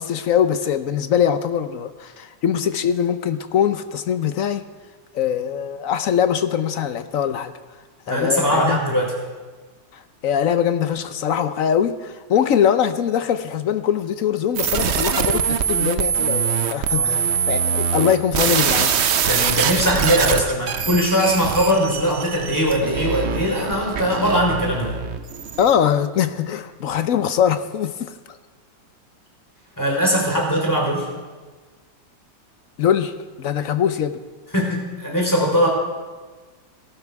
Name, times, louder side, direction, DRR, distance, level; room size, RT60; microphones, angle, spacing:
voice 1, 0.0-4.6 5.1-7.5 8.1-8.8 9.9-19.0 25.6-28.1 32.8-34.2, left 8 dB, 60° left, 10 dB, 0.9 m, -22 dB
voice 2, 8.1-9.1 16.9-17.2 19.3-25.0 29.8-31.1 34.5-35.7, equal, 10° left, -1 dB, 3.9 m, -20 dB
sound 1, 14.6-25.7, right 7 dB, 65° right, 0.6 m, -23 dB
18.0 x 12.5 x 4.7 m, 1.3 s
omnidirectional pair, 2.0 m